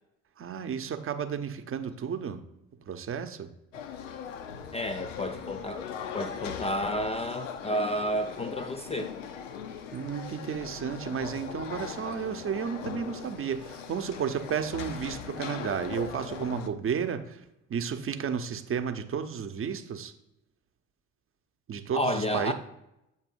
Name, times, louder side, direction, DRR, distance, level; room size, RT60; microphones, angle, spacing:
voice 1, 0.4-2.4 2.9-3.5 9.9-17.4 17.7-20.1 21.7-22.5, right 7 dB, 35° right, 8 dB, 0.7 m, -32 dB
sound 1, 3.7-16.7, left 7 dB, 85° left, 0.5 m, -40 dB
voice 2, 4.7-5.9 6.1-9.1 21.9-22.5, equal, 15° left, 9 dB, 0.4 m, -31 dB
7.3 x 2.7 x 5.2 m, 0.85 s
hypercardioid pair, 55°, 37 cm